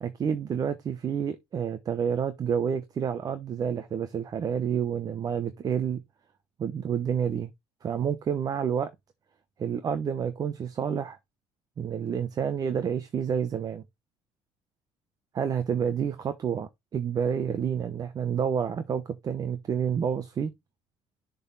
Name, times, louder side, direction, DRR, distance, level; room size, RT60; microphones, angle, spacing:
voice 1, 0.0-6.0 6.6-7.5 7.8-8.9 9.6-11.2 11.8-13.8 15.3-20.5, right 7 dB, 40° right, 0.8 m, -29 dB
6.9 x 4.0 x 3.9 m
cardioid pair, 115°, 10 cm